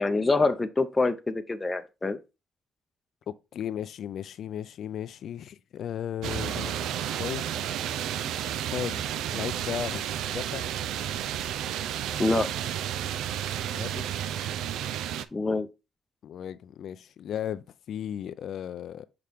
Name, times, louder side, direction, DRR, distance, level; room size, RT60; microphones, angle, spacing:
voice 1, 0.0-2.2 12.2-12.5 15.3-15.7, left 3 dB, 20° left, 0.6 m, -25 dB
voice 2, 3.3-6.9 7.1-7.5 8.7-9.1 9.3-10.6 13.7-14.1 16.2-19.1, left 9 dB, 70° left, 0.4 m, -35 dB
sound 1, 6.2-15.3, right 10 dB, 85° right, 0.4 m, -32 dB
5.8 x 4.8 x 3.5 m
cardioid pair, 90°, 0 cm